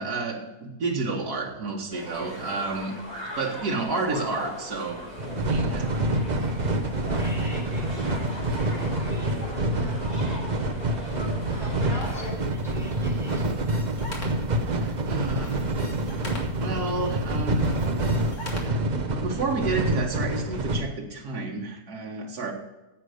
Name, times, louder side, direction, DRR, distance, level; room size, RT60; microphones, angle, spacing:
voice 1, 0.0-3.0 3.4-5.1 5.4-5.9 14.8-15.6 16.6-17.7 18.6-18.8 19.0-22.5, right 3 dB, 80° right, -1 dB, 2.1 m, -30 dB
sound 1, 1.9-12.3, left 2 dB, 70° left, 5.7 m, -39 dB
sound 2, 5.2-20.8, right 1 dB, 35° right, 0.8 m, -27 dB
voice 2, 7.1-8.3 8.7-9.4 9.7-10.1 11.5-13.5, equal, ahead, -4 dB, 4.6 m, -42 dB
sound 3, 12.0-18.7, left 1 dB, 55° left, 2.5 m, -43 dB
10.0 x 8.1 x 6.5 m, 1.1 s
omnidirectional pair, 1.6 m